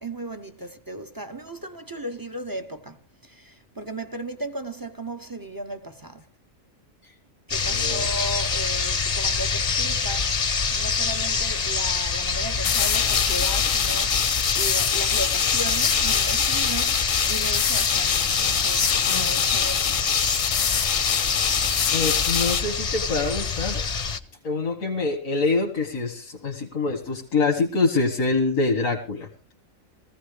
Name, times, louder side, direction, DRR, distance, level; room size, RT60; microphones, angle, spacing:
voice 1, 0.0-6.2 7.5-20.0, right 1 dB, 20° right, 0.6 m, -36 dB
sound 1, 7.5-24.2, left 5 dB, 35° left, 0.7 m, -25 dB
voice 2, 7.7-8.0 20.7-20.9 21.9-23.9 24.4-29.3, left 3 dB, 90° left, 2.0 m, -25 dB
sound 2, 12.6-22.6, left 8 dB, 75° left, 1.2 m, -25 dB
20.0 x 15.5 x 3.3 m
omnidirectional pair, 1.4 m